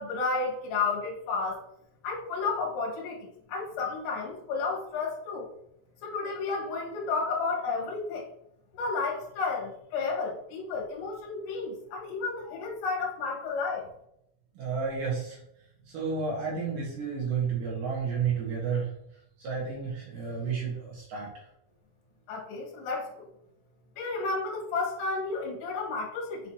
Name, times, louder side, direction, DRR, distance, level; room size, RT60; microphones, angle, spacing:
voice 1, 0.0-1.6 2.0-5.5 6.0-8.2 8.8-13.9 22.3-23.3 24.0-26.4, left 4 dB, 70° left, -1 dB, 3.8 m, -32 dB
voice 2, 14.6-15.4 15.9-18.9 19.4-21.3, right 6 dB, 70° right, -3 dB, 2.1 m, -31 dB
7.9 x 4.4 x 2.8 m, 0.77 s
omnidirectional pair, 5.6 m